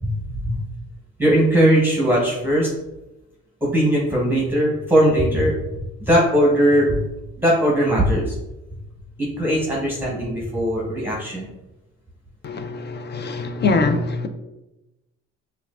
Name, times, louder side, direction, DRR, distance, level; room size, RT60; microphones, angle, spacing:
voice 1, 1.2-2.7 3.7-5.5 6.0-7.0 7.4-8.3 9.2-11.5, equal, 5° right, 1.0 m, -19 dB
voice 2, 12.4-14.3, left 3 dB, 35° left, 0.5 m, -23 dB
5.6 x 2.4 x 2.4 m
cardioid pair, 90°, 30 cm